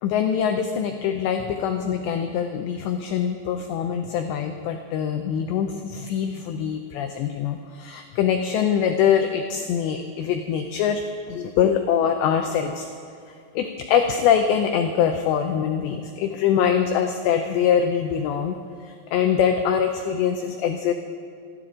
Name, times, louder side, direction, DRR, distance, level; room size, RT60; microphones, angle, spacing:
voice 1, 0.0-11.0 11.3-12.9 13.6-18.6 18.8-20.9, left 8 dB, 85° left, 5 dB, 2.5 m, -23 dB
28.0 x 12.0 x 3.8 m, 2.3 s
omnidirectional pair, 5.9 m